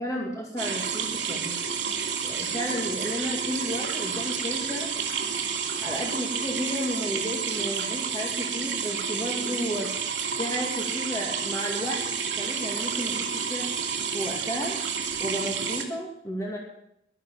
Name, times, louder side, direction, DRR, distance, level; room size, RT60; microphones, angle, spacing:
voice 1, 0.0-1.5 2.2-4.9 5.8-9.9 10.4-12.0 12.3-13.7 14.1-14.8 15.2-16.6, equal, 20° left, -1 dB, 2.3 m, -32 dB
sound 1, 0.6-15.8, right 6 dB, 90° right, 2.6 m, -30 dB
12.0 x 11.5 x 7.0 m, 0.78 s
head